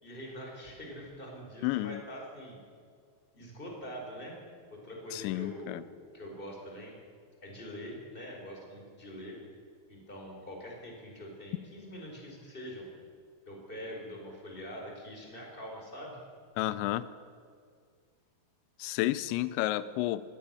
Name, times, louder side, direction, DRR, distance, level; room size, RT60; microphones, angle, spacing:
voice 1, 0.0-2.6 3.3-4.4 4.7-6.9 7.4-9.4 9.9-12.9 13.5-16.2, equal, 10° left, 0 dB, 4.3 m, -44 dB
voice 2, 1.6-2.0 5.1-5.8 16.6-17.0 18.8-20.2, left 16 dB, 85° left, 16 dB, 2.9 m, -31 dB
22.0 x 17.0 x 6.9 m, 2.2 s
omnidirectional pair, 5.1 m